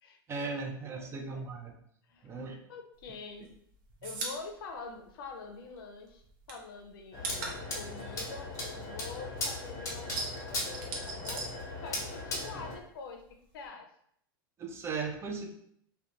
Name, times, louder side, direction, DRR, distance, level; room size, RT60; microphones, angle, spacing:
voice 1, 0.3-1.7 2.2-2.6 14.6-15.5, right 4 dB, 20° right, 3 dB, 0.4 m, -37 dB
voice 2, 0.9-1.5 2.1-3.5 4.0-11.5 11.8-13.9, left 4 dB, 75° left, 4 dB, 0.5 m, -46 dB
Bottle Cap Pop, 3.0-5.8 6.1-9.4 9.7-12.3 12.5-13.7, right 3 dB, 60° right, 0.7 m, -41 dB
sound 1, 7.1-12.8, left 2 dB, 25° left, 0.9 m, -38 dB
2.4 x 2.2 x 2.9 m, 0.69 s
hypercardioid pair, 115°, 12 cm